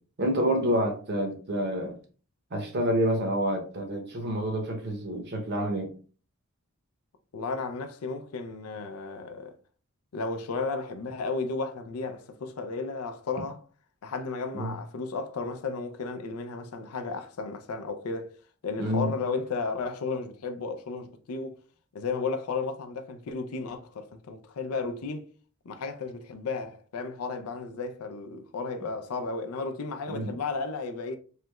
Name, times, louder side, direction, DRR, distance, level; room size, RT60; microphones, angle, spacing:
voice 1, 0.2-1.9 2.5-5.9 14.5-14.7 18.8-19.1 30.1-30.4, equal, 50° right, 0.7 m, -28 dB
voice 2, 7.3-9.5 10.1-13.6 14.0-18.3 18.6-21.6 21.9-25.3 25.7-31.2, left 4 dB, 85° left, 0.5 m, -34 dB
3.2 x 2.9 x 2.3 m
head